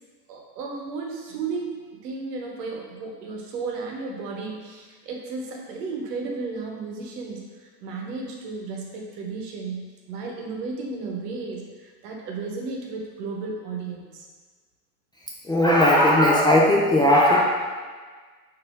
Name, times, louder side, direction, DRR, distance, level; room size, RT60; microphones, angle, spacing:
voice 1, 0.3-7.4 7.8-14.2, right 4 dB, 80° right, 0 dB, 0.9 m, -34 dB
voice 2, 15.4-17.4, left 1 dB, 10° left, -4 dB, 0.3 m, -17 dB
4.1 x 2.7 x 3.5 m, 1.5 s
hypercardioid pair, 85°, 46 cm